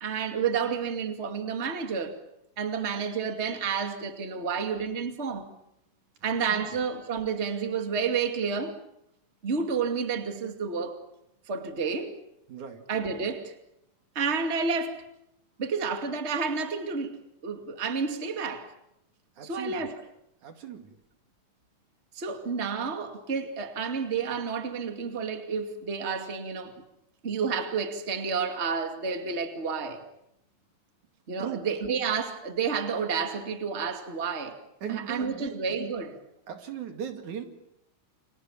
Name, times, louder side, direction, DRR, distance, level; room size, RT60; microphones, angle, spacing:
voice 1, 0.0-2.1 2.6-5.5 6.2-8.8 9.4-11.0 11.5-12.1 12.9-13.5 14.1-15.0 15.6-18.7 19.4-20.0 22.1-26.7 27.2-30.0 31.3-34.6 34.9-36.1, right 5 dB, 20° right, 2.2 m, -30 dB
voice 2, 6.2-6.7 12.5-12.8 19.4-19.9 20.4-20.9 31.4-31.7 34.8-35.6 36.5-37.4, right 9 dB, 65° right, 3.6 m, -38 dB
29.5 x 26.0 x 7.4 m
omnidirectional pair, 3.8 m